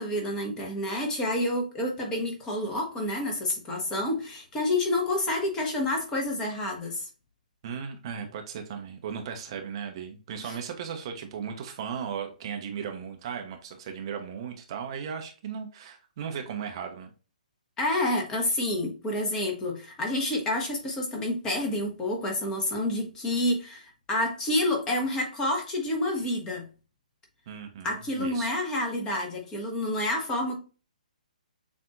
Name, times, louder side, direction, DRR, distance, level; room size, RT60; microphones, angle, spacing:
voice 1, 0.0-7.1 10.4-10.6 17.8-26.7 27.8-30.6, left 1 dB, 15° left, 1.1 m, -29 dB
voice 2, 7.6-17.1 27.5-28.5, right 7 dB, 35° right, 0.8 m, -36 dB
7.0 x 2.6 x 2.5 m
figure-of-eight pair, 125°, 5 cm